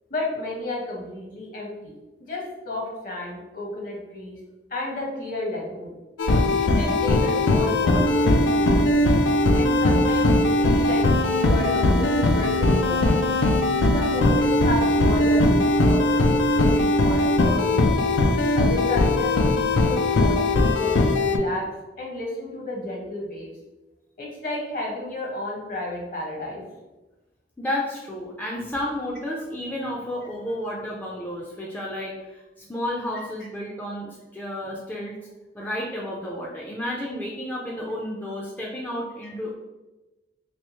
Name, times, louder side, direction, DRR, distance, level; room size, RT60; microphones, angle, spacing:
voice 1, 0.1-1.9 2.2-4.4 4.7-5.9 6.6-9.1 9.5-13.3 13.9-18.0 18.5-21.0 21.2-23.5 24.2-26.6, left 2 dB, 50° left, -2 dB, 1.0 m, -32 dB
sound 1, 6.2-21.4, left 1 dB, 80° left, 0.4 m, -20 dB
voice 2, 27.6-35.2 35.5-39.5, left 1 dB, 10° left, -4 dB, 0.4 m, -31 dB
3.3 x 3.0 x 3.0 m, 1.1 s
head